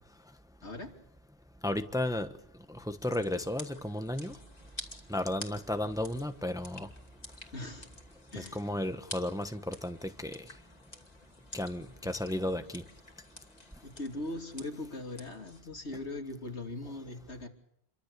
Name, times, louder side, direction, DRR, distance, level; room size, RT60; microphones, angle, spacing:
voice 1, 0.6-0.9 7.5-7.9 8.3-8.6 13.8-17.5, left 2 dB, 90° left, 3 dB, 3.3 m, -40 dB
voice 2, 1.6-2.3 2.7-4.4 5.1-6.9 8.4-10.4 11.5-12.8, left 1 dB, 5° right, 8 dB, 1.1 m, -33 dB
sound 1, 3.0-15.6, left 1 dB, 40° left, 2.7 m, -50 dB
29.0 x 23.5 x 6.8 m, 0.73 s
omnidirectional pair, 1.1 m